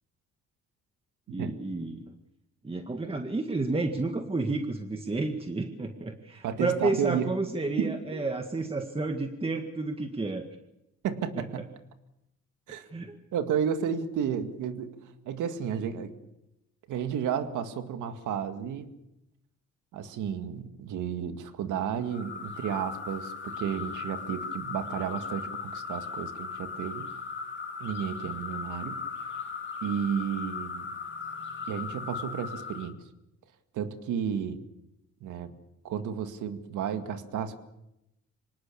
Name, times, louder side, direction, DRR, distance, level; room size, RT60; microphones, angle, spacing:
voice 1, 1.3-2.1 2.6-10.5 11.4-11.5 12.9-13.1, right 3 dB, 20° right, 5 dB, 1.8 m, -31 dB
voice 2, 6.4-7.3 7.8-8.2 11.0-11.7 12.7-12.9 13.3-14.9 15.3-16.1 16.9-18.9 19.9-27.1 27.8-29.0 29.8-30.9 31.7-33.0 33.7-34.6 35.2-35.5 35.8-37.6, right 8 dB, 85° right, 8 dB, 2.0 m, -32 dB
sound 1, 22.1-32.9, left 5 dB, 40° left, 3.1 m, -38 dB
25.5 x 19.0 x 7.1 m, 0.88 s
cardioid pair, 90°, 30 cm